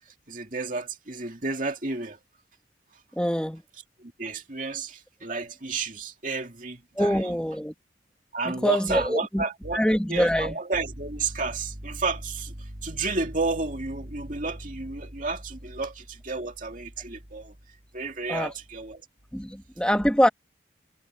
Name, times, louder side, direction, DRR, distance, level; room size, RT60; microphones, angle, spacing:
voice 1, 0.3-2.2 4.0-7.4 8.3-17.5 17.9-19.0, right 3 dB, 45° right, 2.5 m, -31 dB
voice 2, 3.1-3.6 7.0-7.7 8.5-9.4 9.7-10.6 18.3-18.5 19.3-20.3, equal, 5° left, 2.0 m, -24 dB
head